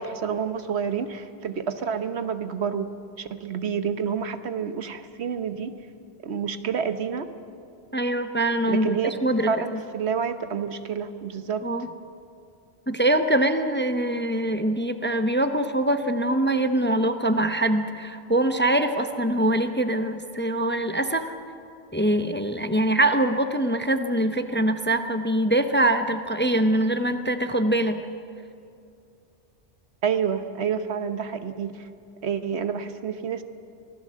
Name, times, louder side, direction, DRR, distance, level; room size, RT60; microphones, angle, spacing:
voice 1, 0.0-2.9 3.2-5.7 6.2-7.3 8.7-9.1 9.5-11.7 30.0-31.9 32.2-33.4, right 7 dB, 75° right, 10 dB, 1.3 m, -28 dB
voice 2, 7.9-9.8 11.6-11.9 12.9-21.3 21.9-28.0, right 1 dB, 10° left, 8 dB, 0.7 m, -23 dB
24.0 x 16.5 x 7.5 m, 2.5 s
omnidirectional pair, 1.1 m